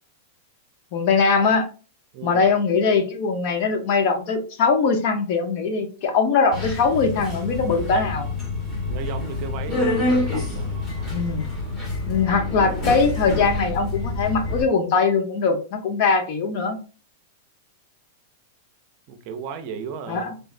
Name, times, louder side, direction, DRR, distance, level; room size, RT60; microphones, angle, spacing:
voice 1, 0.9-1.7 2.2-8.3 11.1-11.5 12.1-16.8 20.1-20.3, left 4 dB, 50° left, 0.7 m, -21 dB
Subway metro underground, 6.5-14.6, left 2 dB, 20° left, 1.1 m, -27 dB
voice 2, 8.9-10.9 19.1-20.3, right 6 dB, 45° right, 0.6 m, -35 dB
3.3 x 3.1 x 2.4 m
supercardioid pair, 150°, 0 cm